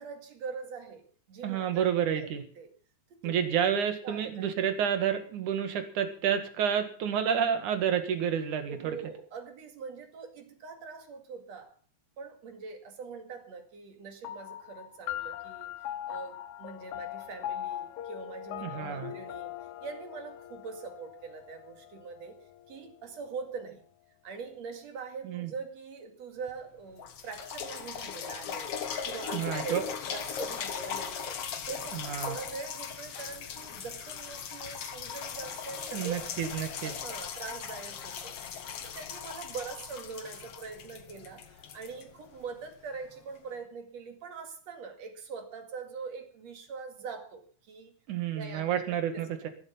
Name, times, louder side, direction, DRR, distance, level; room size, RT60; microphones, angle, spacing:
voice 1, 0.0-2.7 3.1-3.3 4.0-4.5 8.7-11.7 12.2-15.7 16.1-19.5 19.8-23.8 24.2-28.7 29.0-31.4 31.7-36.3 36.8-38.4 38.8-47.9 48.3-48.8 49.1-49.5, right 5 dB, 65° right, 6 dB, 3.2 m, -43 dB
voice 2, 1.4-2.4 3.2-9.0 18.6-19.1 25.2-25.5 29.3-29.8 31.9-32.4 35.9-36.9 48.1-49.5, right 8 dB, 90° right, 8 dB, 3.3 m, -29 dB
sound 1, 14.2-23.1, left 12 dB, 80° left, 2.3 m, -41 dB
sound 2, 26.5-26.6 27.0-42.7 43.4-43.5, left 7 dB, 60° left, 2.3 m, -39 dB
14.5 x 12.5 x 5.7 m, 0.42 s
omnidirectional pair, 3.4 m